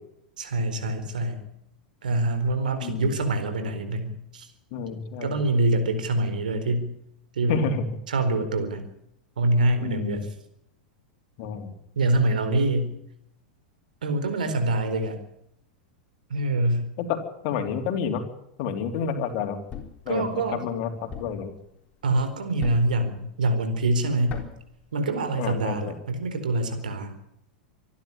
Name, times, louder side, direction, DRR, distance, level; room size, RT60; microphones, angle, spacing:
voice 1, 0.4-1.4 2.0-4.5 5.2-6.9 7.4-7.6 8.1-8.9 9.4-10.3 12.0-12.9 14.0-15.2 16.3-16.9 20.1-20.6 22.0-24.4 24.9-27.1, right 2 dB, 70° right, 8 dB, 4.3 m, -25 dB
voice 2, 2.8-3.1 4.7-5.3 7.5-7.9 9.8-10.2 11.4-11.7 17.0-17.2 17.4-18.2 18.6-19.6 20.0-21.5 25.4-25.9, left 6 dB, 45° left, 5 dB, 3.5 m, -29 dB
Thump thud, 19.7-20.1 21.1-21.5 22.6-23.0 24.3-24.7, left 7 dB, 30° left, 3.8 m, -38 dB
26.0 x 11.5 x 9.9 m, 0.78 s
figure-of-eight pair, 90°, 5 cm